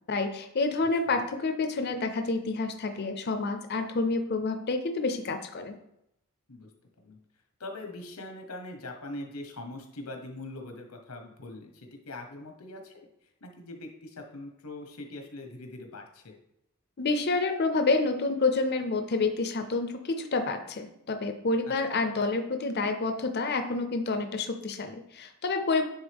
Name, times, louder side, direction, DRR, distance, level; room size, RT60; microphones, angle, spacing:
voice 1, 0.1-5.8 17.0-25.8, left 3 dB, 50° left, 6 dB, 0.6 m, -28 dB
voice 2, 7.6-13.1 13.4-16.4 21.7-21.8, left 2 dB, 90° left, 4 dB, 1.2 m, -42 dB
9.7 x 3.6 x 3.5 m, 0.81 s
head